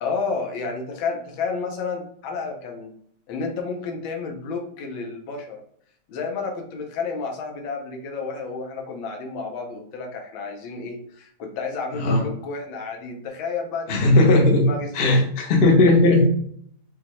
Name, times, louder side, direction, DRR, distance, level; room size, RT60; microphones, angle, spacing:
voice 1, 0.0-2.9 3.3-5.6 6.1-15.2, left 4 dB, 85° left, 2 dB, 1.6 m, -31 dB
voice 2, 13.9-14.7 15.0-15.2 15.5-16.3, left 2 dB, 55° left, 0 dB, 0.6 m, -16 dB
5.4 x 2.2 x 3.0 m, 0.65 s
omnidirectional pair, 2.1 m